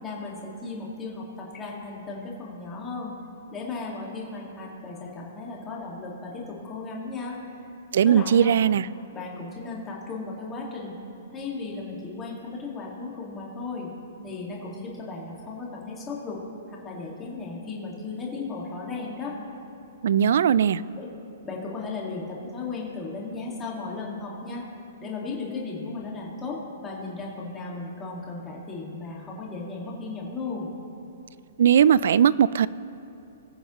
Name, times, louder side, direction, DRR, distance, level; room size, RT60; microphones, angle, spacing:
voice 1, 0.0-3.1 3.5-7.4 8.0-8.6 9.1-11.0 11.3-13.9 14.2-16.4 16.7-19.3 20.9-21.1 21.4-24.7 25.0-30.7, left 3 dB, 15° left, -3 dB, 2.0 m, -35 dB
voice 2, 7.9-8.9 20.0-20.8 31.6-32.7, right 8 dB, 65° right, 19 dB, 0.3 m, -19 dB
21.0 x 7.0 x 3.1 m, 2.7 s
hypercardioid pair, 150°, 0 cm